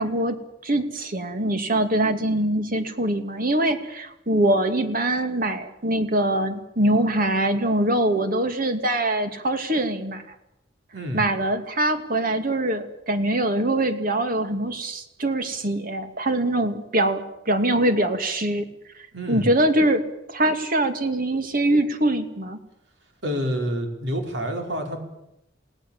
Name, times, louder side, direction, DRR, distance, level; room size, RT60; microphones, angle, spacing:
voice 1, 0.0-10.2 11.1-18.7 19.3-22.6, right 1 dB, 50° right, 7 dB, 2.5 m, -23 dB
voice 2, 10.9-11.2 19.1-19.5 23.2-25.0, equal, 70° right, 3 dB, 5.1 m, -28 dB
28.5 x 19.0 x 7.4 m, 0.84 s
head